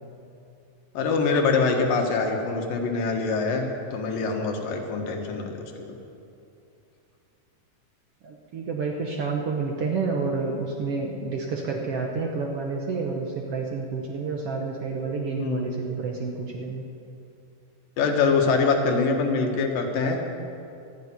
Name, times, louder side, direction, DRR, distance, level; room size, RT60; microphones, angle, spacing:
voice 1, 0.9-5.7 15.4-15.7 18.0-20.2, left 4 dB, 85° left, 2 dB, 3.2 m, -24 dB
voice 2, 8.2-16.8, right 4 dB, 60° right, 1 dB, 1.6 m, -29 dB
13.0 x 10.5 x 9.5 m, 2.6 s
omnidirectional pair, 3.9 m